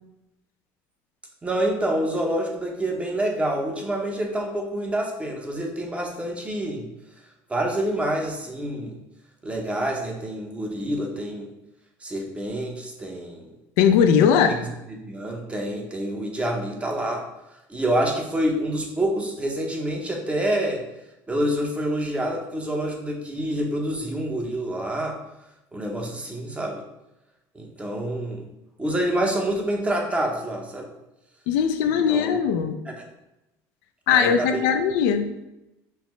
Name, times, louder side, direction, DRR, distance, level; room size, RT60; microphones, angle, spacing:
voice 1, 1.4-6.9 7.5-8.9 9.4-11.5 12.0-13.5 14.9-17.2 17.7-20.8 21.3-25.2 25.7-26.8 27.5-28.5 28.8-30.9 31.8-32.3 32.9-33.1 34.1-34.6, right 1 dB, 15° right, 1 dB, 0.8 m, -27 dB
voice 2, 13.8-14.6 31.5-32.8 34.1-35.3, left 7 dB, 80° left, 7 dB, 0.3 m, -19 dB
5.5 x 2.1 x 3.1 m, 0.93 s
supercardioid pair, 105°, 8 cm